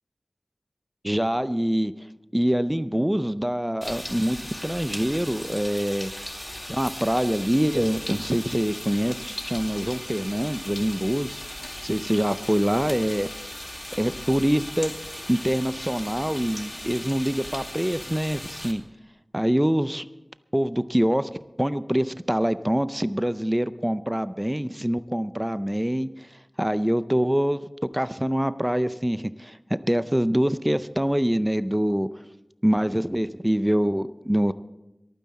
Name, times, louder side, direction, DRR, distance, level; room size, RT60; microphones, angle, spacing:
voice 1, 1.0-6.1 6.7-11.4 11.8-13.3 14.0-14.9 15.3-18.8 19.3-20.0 20.5-21.3 21.6-27.7 27.9-29.6 29.9-32.1 32.6-34.5, equal, 10° right, 13 dB, 0.5 m, -25 dB
sound 1, 3.8-18.7, left 1 dB, 15° left, 2.1 m, -37 dB
23.5 x 9.4 x 4.2 m, 0.96 s
wide cardioid pair, 60°, 0 cm